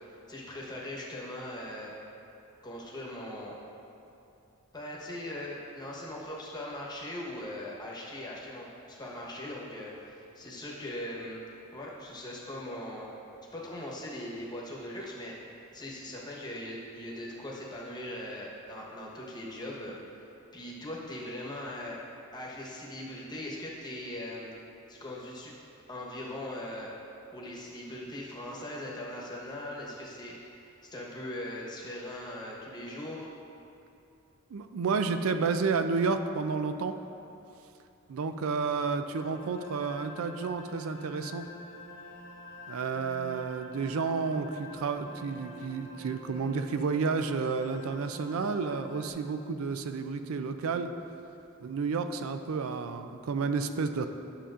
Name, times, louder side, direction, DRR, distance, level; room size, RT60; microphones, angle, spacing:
voice 1, 0.3-1.9 2.6-3.5 4.7-11.4 11.7-13.1 13.5-15.3 15.7-19.9 20.5-22.0 22.3-24.5 24.9-25.5 25.9-26.9 27.3-33.3, left 1 dB, 20° left, -4 dB, 1.1 m, -40 dB
voice 2, 34.5-37.0 38.1-41.5 42.7-50.9 51.6-54.1, right 4 dB, 80° right, 8 dB, 0.4 m, -31 dB
sound 1, 39.1-49.1, left 1 dB, 70° left, 1.1 m, -47 dB
10.0 x 6.8 x 2.5 m, 2.7 s
head